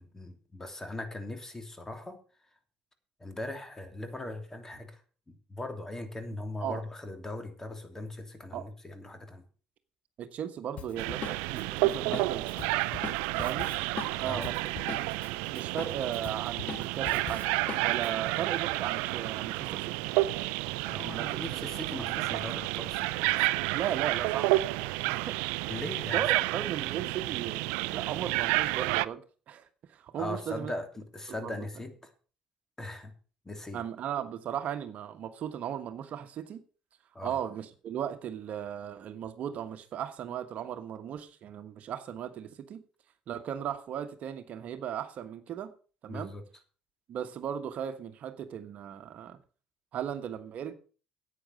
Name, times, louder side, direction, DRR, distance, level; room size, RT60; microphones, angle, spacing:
voice 1, 0.0-2.2 3.2-5.0 5.3-9.4 14.2-14.5 20.8-23.5 25.7-26.4 30.2-32.1 32.8-33.2 33.4-33.8 37.1-37.4 46.1-46.4, left 1 dB, 15° left, 3.0 m, -40 dB
voice 2, 10.2-12.6 13.4-13.8 14.2-14.6 15.5-17.5 17.8-20.0 21.0-21.7 22.1-22.2 23.7-24.8 25.1-25.4 26.1-29.2 29.5-30.7 31.4-31.6 33.7-36.6 37.2-42.8 43.3-45.7 46.0-46.3 47.1-49.4 49.9-50.7, right 9 dB, 60° right, 1.3 m, -36 dB
Drum kit, 10.8-15.3 15.5-18.1, left 7 dB, 55° left, 1.5 m, -41 dB
sound 1, 11.0-29.1, right 20 dB, 85° right, 0.4 m, -30 dB
10.0 x 8.7 x 6.7 m
supercardioid pair, 75°, 3 cm